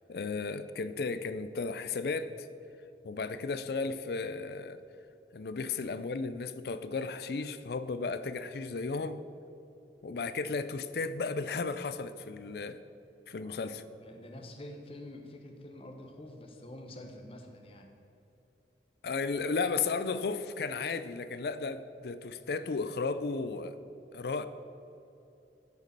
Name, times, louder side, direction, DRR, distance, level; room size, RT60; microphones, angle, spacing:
voice 1, 0.1-2.5 3.0-4.8 5.3-9.2 10.0-12.8 13.3-13.8 19.0-23.8 24.1-24.5, left 4 dB, 65° left, 13 dB, 0.4 m, -34 dB
voice 2, 13.3-13.7 14.0-17.9, left 1 dB, 30° left, 3 dB, 0.9 m, -47 dB
9.2 x 5.2 x 6.7 m, 2.8 s
head